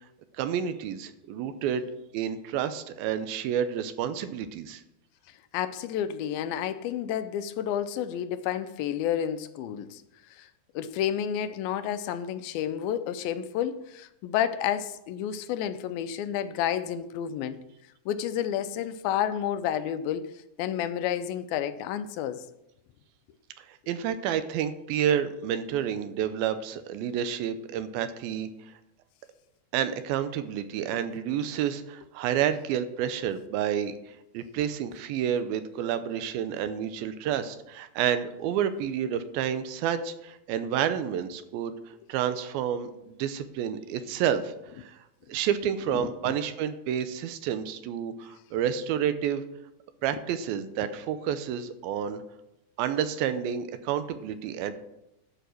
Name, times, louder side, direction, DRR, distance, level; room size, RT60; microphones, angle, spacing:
voice 1, 0.4-1.9 2.1-4.8 23.6-28.5 29.7-41.8 42.1-44.9 45.3-49.4 50.0-52.2 52.8-54.7, right 9 dB, 85° right, 11 dB, 2.5 m, -29 dB
voice 2, 5.5-10.0 10.3-10.5 10.8-17.6 18.1-22.4 45.9-46.3, left 10 dB, 85° left, 11 dB, 2.4 m, -30 dB
11.5 x 5.1 x 6.2 m, 0.87 s
omnidirectional pair, 4.2 m